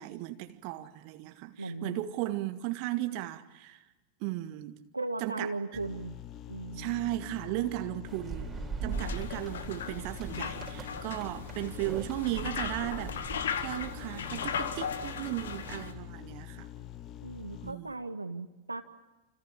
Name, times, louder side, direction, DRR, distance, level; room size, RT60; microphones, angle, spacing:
voice 1, 0.0-3.8 4.2-4.8 5.2-5.5 6.7-8.5 8.8-13.2 13.6-16.7 17.6-18.0, right 16 dB, 45° right, 1.6 m, -36 dB
voice 2, 1.6-2.0 4.9-6.2 6.5-7.0 17.2-18.8, right 3 dB, 80° right, 1.7 m, -37 dB
sound 1, 5.7-17.7, left 12 dB, 35° left, 1.2 m, -45 dB
sound 2, 8.1-15.8, right 4 dB, 20° right, 4.0 m, -42 dB
sound 3, 8.9-15.9, left 7 dB, 65° left, 2.0 m, -37 dB
29.5 x 26.5 x 7.4 m
figure-of-eight pair, 90°, 0 cm